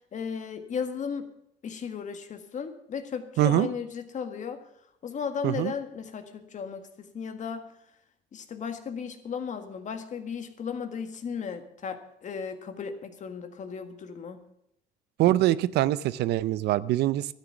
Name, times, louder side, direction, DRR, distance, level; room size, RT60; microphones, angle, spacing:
voice 1, 0.1-1.3 1.6-4.6 5.0-7.7 8.3-14.4, left 6 dB, 45° left, 8 dB, 1.7 m, -35 dB
voice 2, 3.4-3.7 5.4-5.7 15.2-17.3, right 14 dB, 75° right, 17 dB, 0.6 m, -24 dB
13.0 x 9.5 x 7.1 m, 0.75 s
cardioid pair, 110°, 17 cm